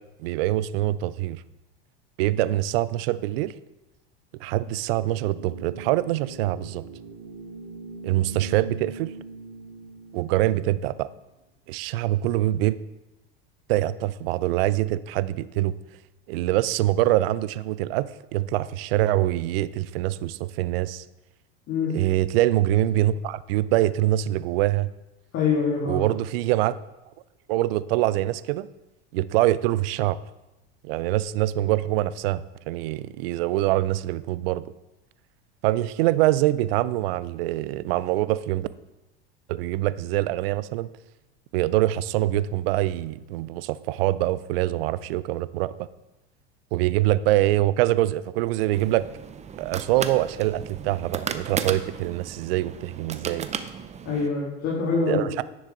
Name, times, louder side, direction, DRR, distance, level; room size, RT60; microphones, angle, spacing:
voice 1, 0.2-1.4 2.2-3.5 4.4-6.8 8.0-9.1 10.1-11.1 11.7-12.8 13.7-15.8 16.3-21.0 21.9-24.9 25.9-26.7 27.5-28.7 29.1-30.2 30.8-34.6 35.6-38.7 39.5-40.9 41.5-45.7 46.7-49.0 49.6-53.5 55.1-55.4, right 15 dB, 70° right, 17 dB, 0.5 m, -24 dB
sound 1, 4.9-11.0, right 3 dB, 40° right, 2.0 m, -42 dB
voice 2, 25.3-26.1 54.1-55.3, left 5 dB, 45° left, -5 dB, 2.5 m, -25 dB
sound 2, 48.7-54.3, right 7 dB, 20° right, 0.6 m, -35 dB
10.0 x 6.3 x 3.9 m, 1.0 s
hypercardioid pair, 100°, 31 cm